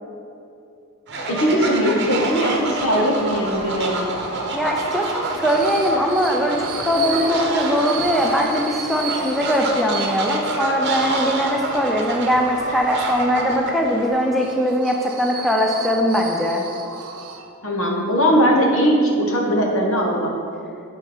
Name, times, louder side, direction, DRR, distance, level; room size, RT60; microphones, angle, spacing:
Fowl, 1.1-14.1, right 2 dB, 50° right, 0.9 m, -28 dB
voice 1, 1.3-4.2 17.6-20.4, equal, 65° left, 0 dB, 1.2 m, -19 dB
sound 1, 2.0-17.8, right 5 dB, 80° right, 0.7 m, -35 dB
sound 2, 3.4-12.8, equal, 35° left, 1.3 m, -37 dB
voice 2, 4.5-16.6, equal, ahead, 0 dB, 0.4 m, -21 dB
8.8 x 4.4 x 5.0 m, 2.6 s
head